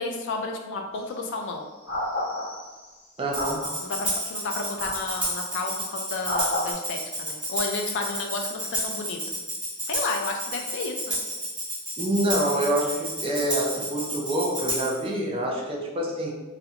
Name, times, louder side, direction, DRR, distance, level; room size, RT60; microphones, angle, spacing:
voice 1, 0.0-1.7 3.8-9.4 9.8-11.2, left 3 dB, 55° left, 3 dB, 0.3 m, -32 dB
sound 1, 0.9-1.1 1.9-2.9 3.3-3.9 4.8-5.4 6.2-6.7, left 1 dB, 70° left, 0.9 m, -31 dB
voice 2, 3.2-3.6 12.0-16.3, right 1 dB, 25° right, -1 dB, 0.4 m, -26 dB
Tambourine, 3.3-15.0, right 1 dB, 5° right, 0.8 m, -31 dB
2.4 x 2.1 x 2.7 m, 1.2 s
head